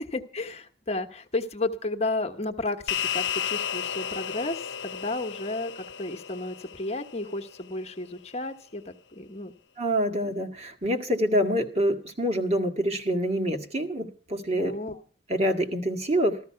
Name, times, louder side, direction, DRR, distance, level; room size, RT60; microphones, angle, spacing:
voice 1, 0.1-9.5 14.6-15.0, left 2 dB, 35° left, 6 dB, 1.1 m, -32 dB
sound 1, 2.9-7.5, left 9 dB, 85° left, 0.7 m, -33 dB
voice 2, 9.8-14.7 15.3-16.4, equal, 35° right, 4 dB, 1.9 m, -26 dB
14.5 x 13.5 x 5.7 m, 0.41 s
head